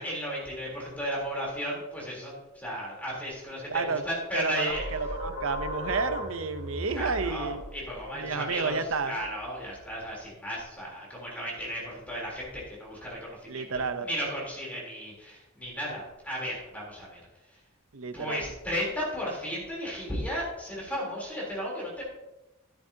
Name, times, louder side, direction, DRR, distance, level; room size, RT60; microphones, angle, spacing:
voice 1, 0.0-4.8 6.9-13.7 14.0-17.2 18.1-22.0, equal, 5° left, -4 dB, 3.5 m, -34 dB
voice 2, 3.7-4.0 4.3-7.6 8.1-9.2 13.5-14.1 17.9-18.5, right 4 dB, 70° right, 10 dB, 0.7 m, -31 dB
sound 1, 4.7-10.0, equal, 55° left, 3.5 m, -38 dB
12.5 x 9.9 x 2.8 m, 1.0 s
head